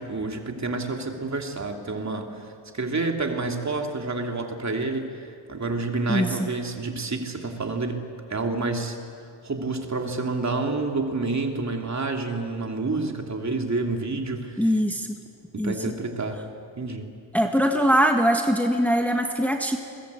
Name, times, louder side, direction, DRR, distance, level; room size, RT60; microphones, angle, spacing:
voice 1, 0.0-9.0 9.4-14.7 15.5-16.4 16.8-17.1, right 3 dB, 35° right, 3 dB, 2.9 m, -29 dB
voice 2, 6.1-6.5 14.6-15.1 15.6-15.8 17.3-19.8, equal, 5° left, 3 dB, 1.5 m, -22 dB
29.5 x 22.0 x 8.4 m, 2.3 s
wide cardioid pair, 130°, 47 cm